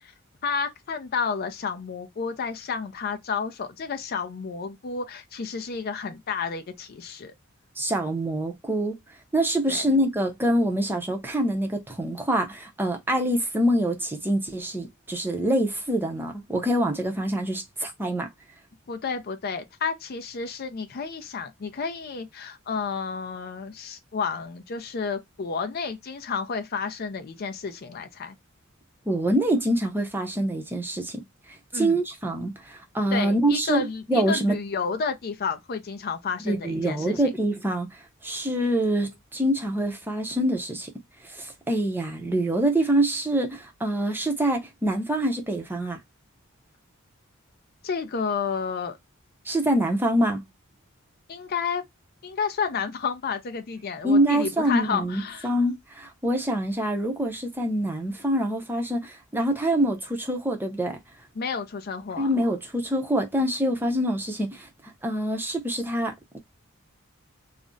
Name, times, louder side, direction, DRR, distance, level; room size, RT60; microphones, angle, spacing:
voice 1, 0.4-7.3 9.7-9.9 18.9-28.3 31.7-32.0 33.1-37.2 47.8-49.0 51.3-51.8 52.2-55.5 61.4-62.3, left 5 dB, 45° left, 0.4 m, -31 dB
voice 2, 7.8-9.0 9.3-18.3 29.1-31.2 31.7-34.6 36.4-37.9 38.2-40.9 41.2-46.0 49.5-50.4 54.0-61.0 62.2-64.7 65.0-66.4, right 1 dB, 10° right, 0.6 m, -25 dB
2.4 x 2.0 x 3.7 m
head